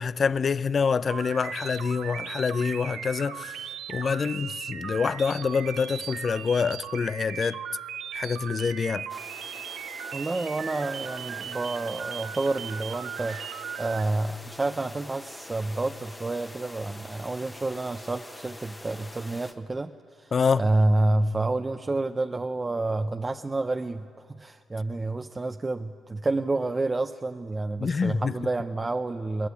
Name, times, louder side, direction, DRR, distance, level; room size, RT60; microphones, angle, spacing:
voice 1, 0.0-7.6 8.1-9.1 20.3-20.7 27.8-28.3, left 5 dB, 40° left, 0.5 m, -26 dB
sound 1, 1.1-14.0, right 9 dB, 85° right, 0.8 m, -38 dB
sound 2, 9.1-19.5, left 1 dB, 15° left, 1.3 m, -45 dB
voice 2, 10.1-13.4 13.8-19.9 20.2-20.3 20.6-24.1 24.4-29.5, right 2 dB, 25° right, 0.7 m, -29 dB
21.0 x 19.5 x 8.5 m
cardioid pair, 90°, 0 cm